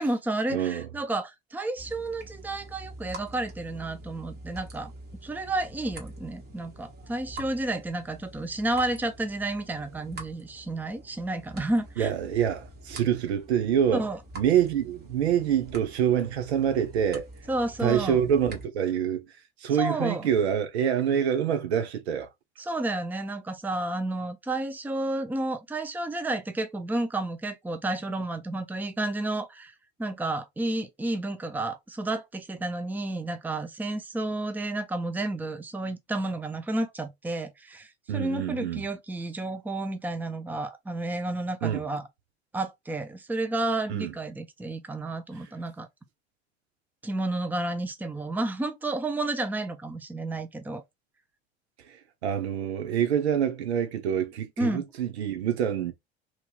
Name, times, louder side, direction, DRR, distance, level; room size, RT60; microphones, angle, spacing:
voice 1, 0.0-4.9 5.2-12.1 13.9-14.2 17.5-18.2 19.8-20.3 22.6-29.7 30.0-42.0 42.5-45.9 47.0-50.8 54.6-54.8, right 2 dB, 5° right, 0.5 m, -31 dB
voice 2, 0.5-0.9 12.0-14.0 14.3-17.3 17.8-19.2 19.6-22.3 38.1-38.8 41.6-41.8 43.9-44.1 52.2-55.9, right 9 dB, 80° right, 0.8 m, -26 dB
sound 1, 1.8-18.7, right 1 dB, 30° right, 1.4 m, -46 dB
3.0 x 2.9 x 2.3 m
hypercardioid pair, 75°, 32 cm